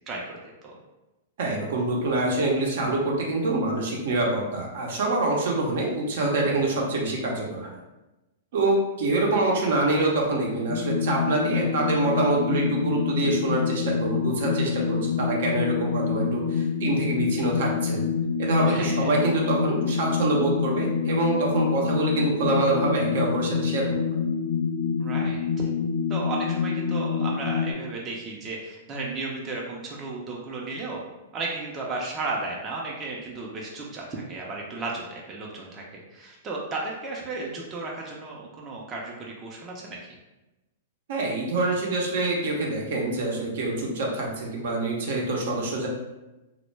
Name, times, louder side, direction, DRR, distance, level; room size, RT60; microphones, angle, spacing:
voice 1, 0.1-0.7 18.7-19.1 25.0-25.7 26.1-31.0 31.3-35.8 36.1-40.2, right 3 dB, 25° right, -2 dB, 0.5 m, -34 dB
voice 2, 1.4-7.7 8.5-18.0 18.4-24.0 41.1-45.9, right 2 dB, 65° right, -1 dB, 0.6 m, -25 dB
sound 1, 10.7-27.7, left 6 dB, 70° left, 0.3 m, -26 dB
2.1 x 2.1 x 3.2 m, 1.0 s
hypercardioid pair, 125°, 0 cm